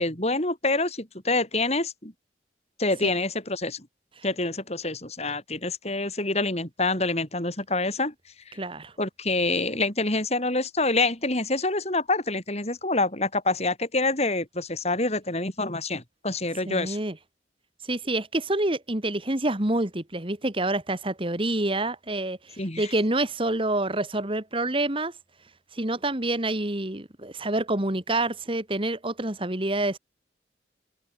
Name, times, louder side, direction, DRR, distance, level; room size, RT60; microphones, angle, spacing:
voice 1, 0.0-2.1 2.8-3.9 4.2-8.1 8.5-8.6 9.0-17.0 22.6-22.9, left 2 dB, 35° left, 7.7 m, -26 dB
voice 2, 8.6-8.9 16.7-17.2 17.8-25.1 25.7-30.0, right 2 dB, 30° right, 2.0 m, -27 dB
head